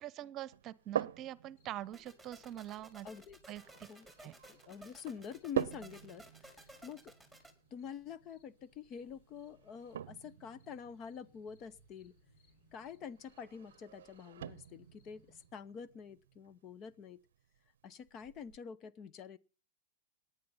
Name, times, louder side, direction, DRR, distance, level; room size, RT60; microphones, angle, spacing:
voice 1, 0.0-3.1 3.5-3.9 4.2-4.3, right 13 dB, 35° right, 0.9 m, -44 dB
sound 1, 0.5-18.6, right 10 dB, 75° right, 0.6 m, -46 dB
sound 2, 1.6-15.5, left 2 dB, 60° left, 6.3 m, -71 dB
sound 3, 1.9-7.5, right 1 dB, 5° left, 5.1 m, -56 dB
voice 2, 3.0-3.4 3.9-7.1 7.7-12.1 12.7-17.2 17.8-19.4, left 7 dB, 35° left, 0.8 m, -47 dB
18.5 x 10.5 x 5.7 m
hypercardioid pair, 115°, 0 cm